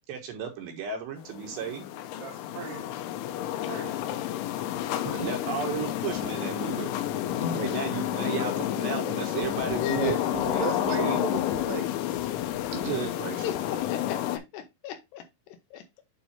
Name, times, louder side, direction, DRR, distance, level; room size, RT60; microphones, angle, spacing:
voice 1, 0.1-1.9 5.0-6.9 7.5-11.2 12.7-13.5, right 7 dB, 70° right, 3.3 m, -34 dB
sound 1, 1.2-14.4, left 12 dB, 85° left, 3.2 m, -30 dB
voice 2, 2.2-3.0 3.7-4.1 6.9-7.4 9.9-10.2 10.5-11.9, right 9 dB, 85° right, 3.7 m, -37 dB
voice 3, 7.3-7.7 9.6-10.2 12.8-13.0 13.4-16.0, left 8 dB, 70° left, 3.1 m, -36 dB
9.1 x 3.8 x 4.2 m
omnidirectional pair, 5.5 m